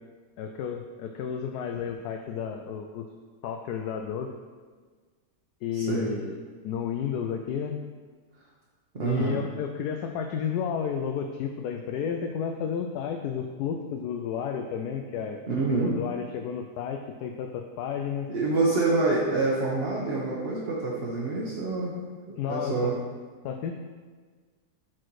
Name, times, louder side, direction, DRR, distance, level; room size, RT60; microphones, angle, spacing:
voice 1, 0.4-3.1 3.4-4.3 5.6-6.4 6.6-7.7 9.0-15.4 15.7-18.3 20.0-20.1 22.4-22.9 23.4-23.8, left 7 dB, 75° left, 4 dB, 1.0 m, -32 dB
voice 2, 5.7-6.1 8.9-9.4 15.5-16.0 18.3-21.9 22.3-23.0, right 3 dB, 40° right, -5 dB, 1.1 m, -27 dB
8.9 x 4.2 x 4.7 m, 1.5 s
omnidirectional pair, 1.8 m